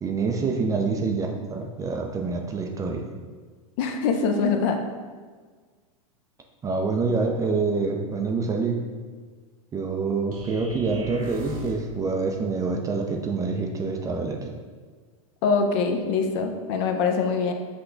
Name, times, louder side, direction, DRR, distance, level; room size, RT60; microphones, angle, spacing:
voice 1, 0.0-3.0 6.6-8.8 9.7-14.5, right 4 dB, 20° right, 2 dB, 0.4 m, -26 dB
voice 2, 3.8-4.8 15.4-17.5, left 5 dB, 50° left, 5 dB, 0.6 m, -23 dB
sound 1, 10.3-11.9, left 1 dB, 75° right, 1.1 m, -41 dB
5.9 x 2.2 x 3.8 m, 1.5 s
hypercardioid pair, 110°, 18 cm